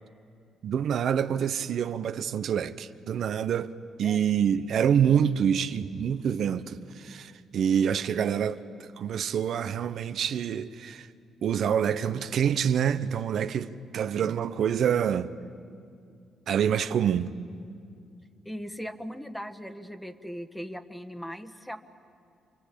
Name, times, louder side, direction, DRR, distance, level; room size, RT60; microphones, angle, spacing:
voice 1, 0.6-3.7 4.0-11.1 11.4-15.3 16.5-17.3, right 8 dB, 65° right, 0.9 m, -26 dB
voice 2, 18.4-21.8, equal, 5° left, 1.5 m, -39 dB
28.5 x 23.5 x 8.5 m
cardioid pair, 90°, 0 cm